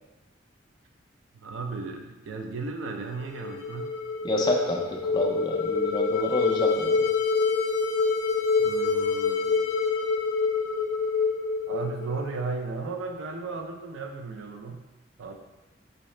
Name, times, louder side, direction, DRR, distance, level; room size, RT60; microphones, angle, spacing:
voice 1, 1.4-3.9 8.6-9.7 11.7-14.8 15.2-15.3, right 4 dB, 90° right, 4 dB, 0.4 m, -35 dB
sound 1, 3.2-12.4, left 4 dB, 80° left, 0.5 m, -26 dB
voice 2, 4.2-4.8 5.1-7.0, left 1 dB, 20° left, 1 dB, 0.4 m, -28 dB
3.9 x 2.7 x 3.1 m, 1.1 s
head